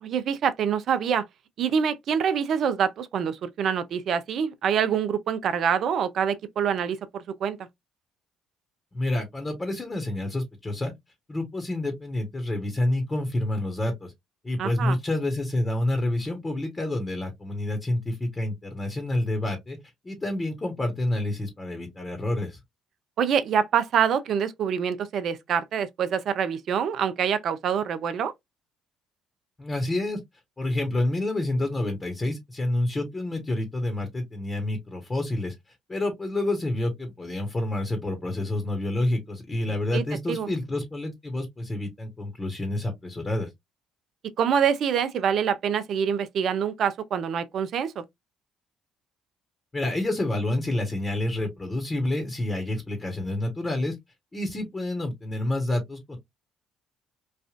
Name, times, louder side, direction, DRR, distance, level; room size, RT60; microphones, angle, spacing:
voice 1, 0.0-1.2 1.6-7.6 14.6-15.0 23.2-28.3 39.9-40.0 40.3-40.5 44.4-48.0, right 7 dB, 60° right, 0.5 m, -25 dB
voice 2, 8.9-10.9 11.3-14.1 14.4-19.8 20.0-22.6 29.6-30.2 30.6-35.5 35.9-43.5 49.7-53.9 54.3-56.2, left 1 dB, 25° left, 1.2 m, -28 dB
3.2 x 2.5 x 2.4 m
supercardioid pair, 70°, 0 cm